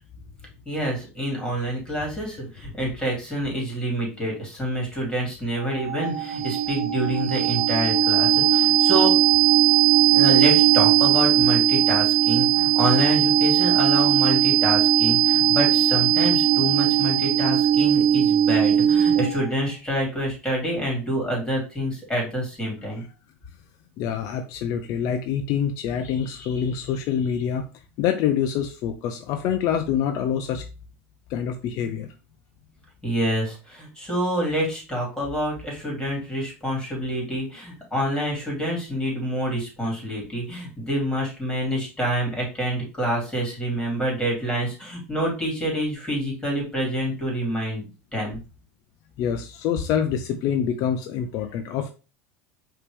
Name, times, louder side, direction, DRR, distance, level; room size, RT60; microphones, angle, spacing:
voice 1, 0.6-9.1 10.1-23.0 33.0-47.8 48.1-48.4, equal, 10° left, -2 dB, 2.8 m, -27 dB
sound 1, 5.6-19.5, right 11 dB, 45° right, 1.3 m, -19 dB
voice 2, 24.0-27.6 28.0-30.6 31.3-32.1 49.2-51.9, left 8 dB, 55° left, 6 dB, 0.5 m, -26 dB
5.1 x 2.9 x 3.3 m, 0.33 s
supercardioid pair, 100°, 7 cm